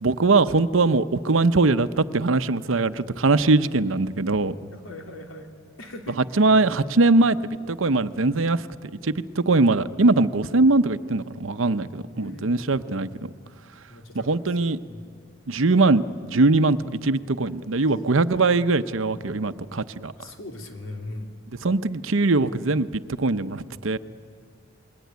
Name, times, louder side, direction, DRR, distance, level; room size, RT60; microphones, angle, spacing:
voice 1, 0.0-4.5 6.4-8.6 9.0-13.3 14.1-14.8 15.5-20.1 21.6-24.0, right 3 dB, 75° right, 12 dB, 0.8 m, -21 dB
voice 2, 4.7-6.2 12.1-13.1 13.9-14.4 14.8-15.1 17.9-18.1 20.1-21.3, left 1 dB, 85° left, 3 dB, 3.2 m, -40 dB
28.0 x 21.5 x 9.4 m, 2.1 s
head